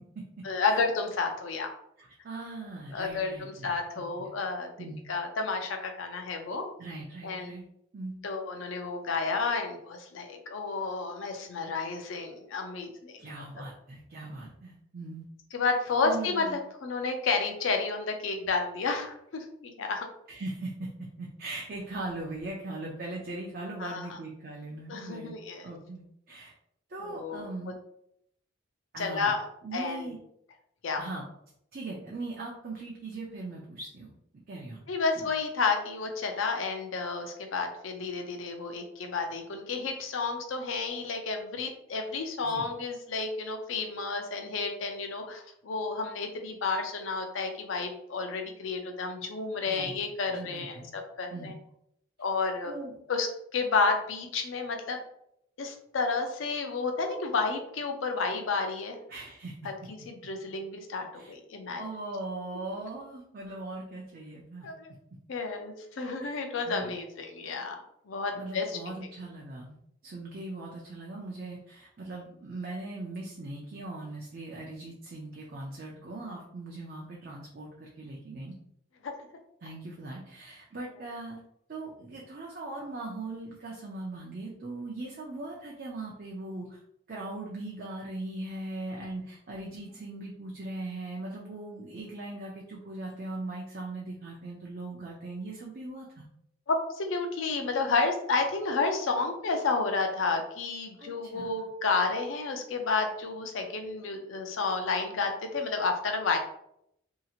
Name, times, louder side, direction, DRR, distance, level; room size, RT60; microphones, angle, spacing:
voice 1, 0.4-1.7 2.9-4.7 5.1-6.6 7.2-7.5 8.2-13.2 15.5-20.1 23.8-24.2 24.9-25.7 27.0-27.7 29.0-29.4 29.7-30.1 30.8-31.0 34.9-51.5 52.2-52.7 53.1-55.0 55.6-59.0 59.6-59.7 60.1-61.8 64.6-64.9 65.3-68.8 79.0-79.1 96.7-106.4, left 4 dB, 70° left, 4 dB, 0.5 m, -31 dB
voice 2, 2.0-4.3 4.8-5.0 6.8-7.6 7.9-8.1 13.2-15.3 16.0-16.6 20.3-20.9 21.2-25.4 25.6-26.5 26.9-27.7 28.9-29.3 29.6-30.2 31.0-31.2 31.7-34.1 34.5-34.8 35.2-35.3 42.4-42.7 49.7-50.0 50.3-50.9 51.3-51.5 52.7-52.9 59.1-59.5 61.2-61.3 61.8-64.7 66.2-66.4 66.7-67.0 68.3-69.8 70.0-78.5 79.6-81.4 81.7-86.8 87.1-96.3 101.0-101.5, right 2 dB, 45° right, -2 dB, 0.4 m, -40 dB
2.8 x 2.7 x 2.4 m, 0.74 s
head